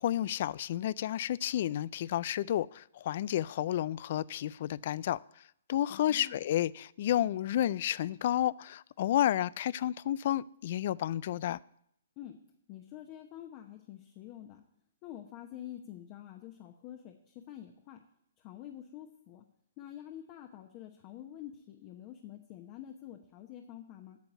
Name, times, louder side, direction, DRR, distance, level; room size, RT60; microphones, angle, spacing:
voice 1, 0.0-5.2 5.7-11.6, left 12 dB, 50° left, 0.3 m, -31 dB
voice 2, 5.9-6.4 12.2-12.4 12.7-14.6 15.0-18.0 18.4-19.4 19.8-24.2, left 11 dB, 35° left, 1.0 m, -47 dB
9.2 x 7.0 x 8.1 m
hypercardioid pair, 135°, 0 cm